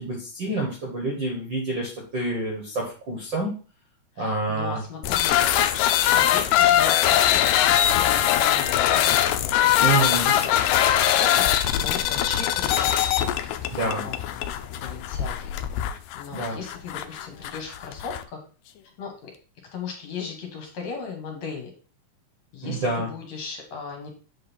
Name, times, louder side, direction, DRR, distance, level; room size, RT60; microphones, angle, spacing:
voice 1, 0.0-3.5 4.2-4.8 9.8-10.3 13.7-14.1 16.3-16.6 22.6-23.1, right 2 dB, 50° right, -1 dB, 1.4 m, -27 dB
voice 2, 4.2-5.4 6.1-15.4 16.1-18.4 19.0-19.3 19.7-21.7 22.5-24.1, left 5 dB, 65° left, 2 dB, 2.3 m, -37 dB
sound 1, 5.0-18.2, left 11 dB, 85° left, 2.2 m, -22 dB
7.5 x 3.8 x 4.3 m, 0.37 s
omnidirectional pair, 3.8 m